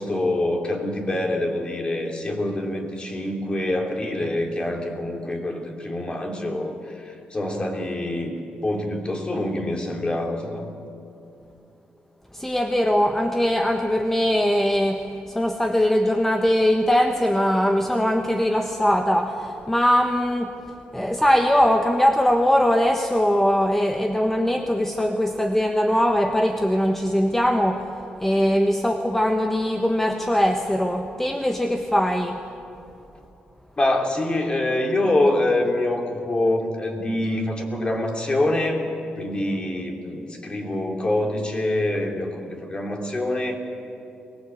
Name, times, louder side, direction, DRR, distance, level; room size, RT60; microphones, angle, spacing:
voice 1, 0.0-8.3 8.6-10.6 33.8-43.6, left 1 dB, 30° left, 2 dB, 3.3 m, -25 dB
voice 2, 12.3-27.9 28.2-32.4, equal, 10° left, 5 dB, 1.3 m, -21 dB
23.0 x 19.0 x 8.4 m, 2.8 s
cardioid pair, 85°, 3 cm